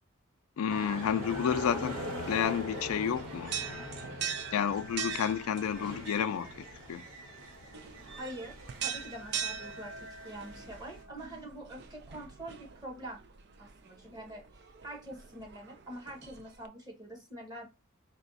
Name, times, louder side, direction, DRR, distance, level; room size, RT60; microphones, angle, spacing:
voice 1, 0.6-3.5 4.5-7.0, left 8 dB, 85° left, 0.4 m, -31 dB
sound 1, 0.7-11.0, equal, 75° right, 1.5 m, -43 dB
sound 2, 2.2-16.7, right 7 dB, 50° right, 0.4 m, -42 dB
voice 2, 8.2-13.2 13.6-17.7, right 1 dB, 20° right, 1.1 m, -45 dB
4.2 x 2.3 x 4.0 m
head